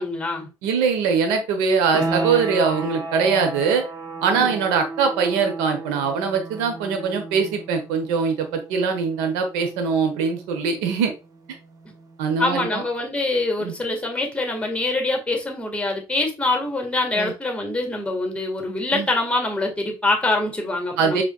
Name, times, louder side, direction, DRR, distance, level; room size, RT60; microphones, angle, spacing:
voice 1, 0.0-0.5 4.4-4.6 11.8-11.9 12.4-21.2, left 2 dB, 10° left, 1.7 m, -24 dB
voice 2, 0.6-3.8 4.2-11.1 12.2-12.8 13.6-13.8 17.1-17.3 18.9-19.1 21.0-21.2, right 5 dB, 70° right, 1.1 m, -22 dB
sound 1, 1.9-12.4, right 3 dB, 30° right, 1.1 m, -34 dB
4.7 x 4.0 x 2.3 m
hypercardioid pair, 65°, 12 cm